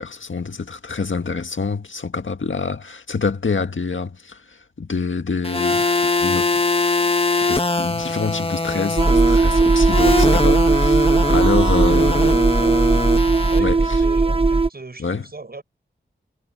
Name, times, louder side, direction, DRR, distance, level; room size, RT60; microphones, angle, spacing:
voice 1, 0.0-5.9 6.2-7.1 7.4-12.4 13.6-14.0 15.0-15.2, left 4 dB, 75° left, 1.8 m, -26 dB
sound 1, 5.4-13.6, left 3 dB, 30° left, 1.6 m, -22 dB
sound 2, 9.0-14.7, right 3 dB, 30° right, 0.9 m, -17 dB
voice 2, 12.1-13.0 13.5-15.6, right 3 dB, 50° right, 6.5 m, -38 dB
wide cardioid pair, 75°, 20 cm